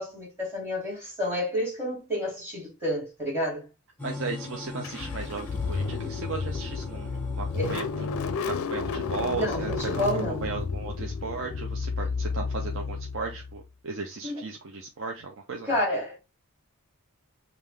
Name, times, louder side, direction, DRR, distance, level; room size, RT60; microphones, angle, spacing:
voice 1, 0.0-3.7 7.6-7.7 9.4-10.5 14.2-14.4 15.7-16.2, left 1 dB, 10° right, 2.6 m, -29 dB
sound 1, 4.0-10.5, left 2 dB, 5° left, 0.9 m, -42 dB
voice 2, 4.0-15.8, right 4 dB, 60° right, 0.6 m, -36 dB
Car / Engine starting, 4.8-13.6, left 4 dB, 70° left, 0.4 m, -32 dB
5.4 x 2.6 x 3.3 m
head